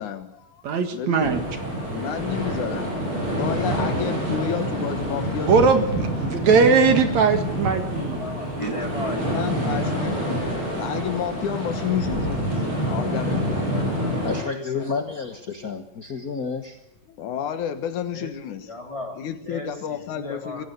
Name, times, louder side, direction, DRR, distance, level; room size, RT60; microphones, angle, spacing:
voice 1, 0.0-0.6 0.9-1.4 1.9-3.0 3.2-6.1 9.2-13.7 17.1-18.7 19.2-20.6, left 9 dB, 70° left, 10 dB, 2.8 m, -31 dB
voice 2, 0.6-1.4 5.4-8.2 8.6-8.7, right 5 dB, 60° right, 7 dB, 3.0 m, -20 dB
sound 1, 1.2-14.4, equal, 40° right, 8.1 m, -27 dB
voice 3, 7.6-9.2 9.6-10.7 12.0-12.4 13.5-14.9 18.1-20.7, left 1 dB, 10° left, 2 dB, 3.3 m, -37 dB
voice 4, 14.2-16.8, left 5 dB, 50° left, 6 dB, 1.0 m, -30 dB
22.5 x 16.0 x 8.1 m, 0.76 s
omnidirectional pair, 3.7 m